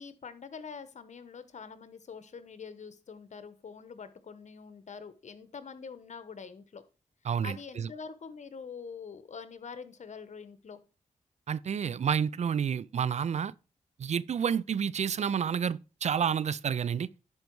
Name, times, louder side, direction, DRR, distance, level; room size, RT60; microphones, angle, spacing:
voice 1, 0.0-6.8 7.4-10.8, left 5 dB, 60° left, 1.1 m, -45 dB
voice 2, 7.3-7.9 11.5-13.5 14.0-17.1, right 7 dB, 60° right, 0.4 m, -30 dB
10.5 x 4.6 x 4.6 m
cardioid pair, 55°, 13 cm